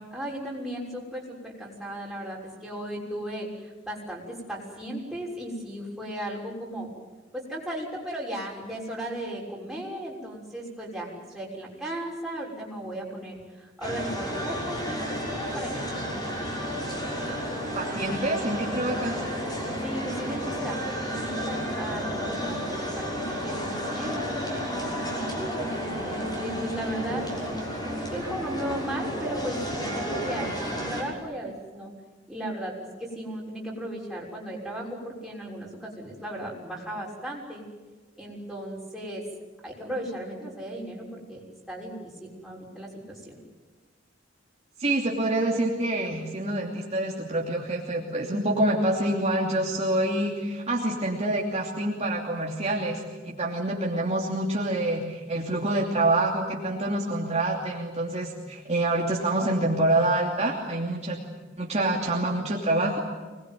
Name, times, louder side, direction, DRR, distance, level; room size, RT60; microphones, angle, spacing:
voice 1, 0.1-6.9 7.3-16.6 19.8-25.5 26.0-27.2 27.5-31.9 32.3-37.6 38.2-39.2 39.6-43.4, right 1 dB, ahead, -4 dB, 6.3 m, -36 dB
sound 1, 13.8-31.0, equal, 20° left, 6.3 m, -31 dB
voice 2, 17.7-19.3 44.8-61.2 61.6-63.0, right 1 dB, 35° right, -2 dB, 2.9 m, -26 dB
25.5 x 20.5 x 9.4 m, 1.3 s
head